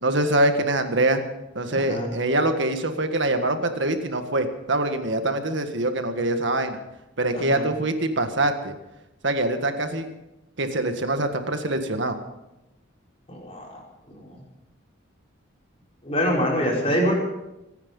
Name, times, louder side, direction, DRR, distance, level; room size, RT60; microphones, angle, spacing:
voice 1, 0.0-1.2 1.5-6.8 7.2-8.7 9.2-10.1 10.6-12.2, right 1 dB, 60° right, 7 dB, 1.7 m, -24 dB
voice 2, 1.7-2.1 7.3-7.7 13.3-13.8 14.1-14.4 16.0-17.1, equal, 30° left, -3 dB, 5.2 m, -25 dB
25.0 x 9.9 x 5.5 m, 0.94 s
head